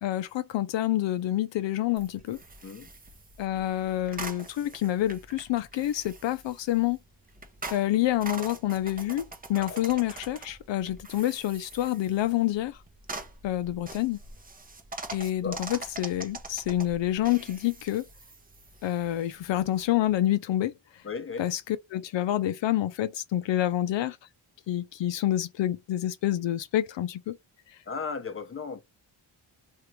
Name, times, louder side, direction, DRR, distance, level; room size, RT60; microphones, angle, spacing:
voice 1, 0.0-2.4 3.4-7.0 7.7-9.2 9.5-12.8 13.4-14.2 15.1-18.1 18.8-21.0 21.4-21.6 21.9-24.2 24.7-27.4, left 13 dB, 70° left, 0.5 m, -28 dB
sound 1, 2.0-20.2, right 3 dB, 20° right, 0.7 m, -44 dB
voice 2, 21.0-21.4 27.8-28.8, left 5 dB, 25° left, 0.7 m, -35 dB
2.9 x 2.6 x 3.2 m
cardioid pair, 85°, 47 cm